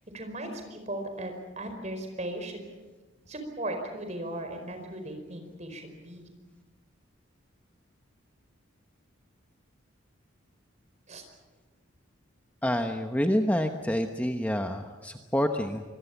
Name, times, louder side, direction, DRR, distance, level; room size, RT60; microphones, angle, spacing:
voice 1, 0.1-2.7 3.2-6.3 11.1-11.2, right 1 dB, 35° right, 5 dB, 4.8 m, -37 dB
voice 2, 12.6-15.8, equal, 10° left, 4 dB, 1.0 m, -28 dB
26.0 x 22.0 x 7.2 m, 1.3 s
head